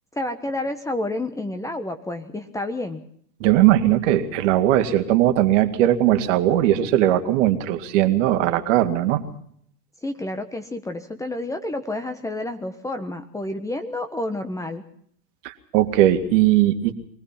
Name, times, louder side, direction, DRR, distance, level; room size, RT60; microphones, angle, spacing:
voice 1, 0.1-3.0 10.0-14.8, left 1 dB, 5° left, 7 dB, 1.2 m, -29 dB
voice 2, 3.4-9.2 15.4-16.9, right 13 dB, 50° right, 7 dB, 2.3 m, -19 dB
24.0 x 18.5 x 5.9 m, 0.65 s
hypercardioid pair, 110°, 48 cm